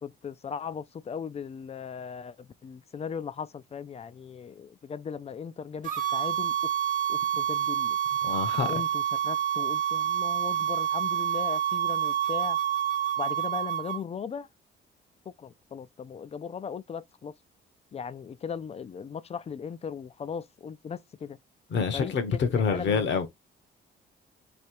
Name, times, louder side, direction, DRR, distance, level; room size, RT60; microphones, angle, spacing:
voice 1, 0.0-6.7 7.1-8.0 8.5-12.6 13.2-14.5 15.3-17.3 17.9-21.4 21.9-23.1, left 6 dB, 30° left, 0.4 m, -38 dB
sound 1, 5.8-14.0, right 10 dB, 45° right, 1.1 m, -28 dB
voice 2, 8.2-8.7 21.7-23.3, left 5 dB, 65° left, 1.1 m, -27 dB
3.3 x 2.8 x 4.5 m
cardioid pair, 90°, 20 cm